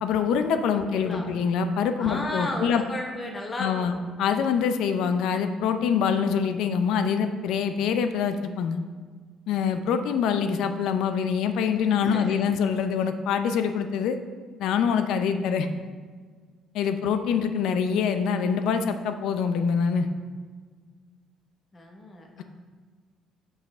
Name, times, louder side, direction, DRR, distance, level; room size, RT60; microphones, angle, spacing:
voice 1, 0.0-2.8 3.6-8.8 9.5-14.2 14.6-15.7 16.7-20.1, left 6 dB, 75° left, 9 dB, 0.5 m, -25 dB
voice 2, 0.7-1.3 2.0-3.9 12.0-12.5 21.7-22.4, left 1 dB, 20° left, 1 dB, 0.8 m, -34 dB
6.0 x 5.6 x 4.2 m, 1.5 s
cardioid pair, 150°, 0 cm